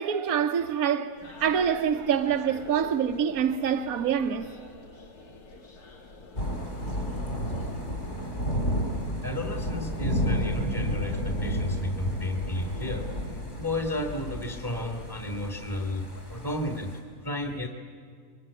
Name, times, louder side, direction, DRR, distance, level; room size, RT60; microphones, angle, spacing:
voice 1, 0.0-4.5, right 8 dB, 70° right, 1.4 m, -26 dB
sound 1, 1.2-7.8, left 3 dB, 80° left, 2.5 m, -48 dB
Thunder / Rain, 6.4-17.0, equal, 50° left, 4.1 m, -32 dB
voice 2, 9.2-13.0 13.6-16.9 17.2-17.7, left 1 dB, 15° left, 1.7 m, -32 dB
22.5 x 22.5 x 9.6 m
omnidirectional pair, 1.6 m